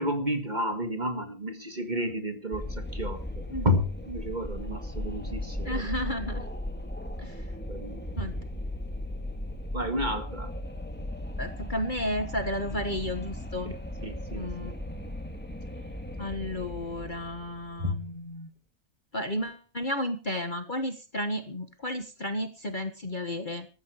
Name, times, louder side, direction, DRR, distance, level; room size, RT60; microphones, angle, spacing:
voice 1, 0.0-3.2 3.6-5.9 7.7-8.0 9.7-10.5 14.0-14.4 17.8-18.0, equal, 25° right, 7 dB, 1.9 m, -31 dB
Wind, 2.5-17.9, left 1 dB, 5° left, 1.7 m, -37 dB
voice 2, 5.6-6.4 7.2-7.5 8.2-8.4 11.4-13.7 14.3-14.7 16.2-18.5 19.1-23.7, left 1 dB, 30° left, 8 dB, 1.4 m, -33 dB
14.5 x 13.5 x 5.0 m, 0.35 s
omnidirectional pair, 1.8 m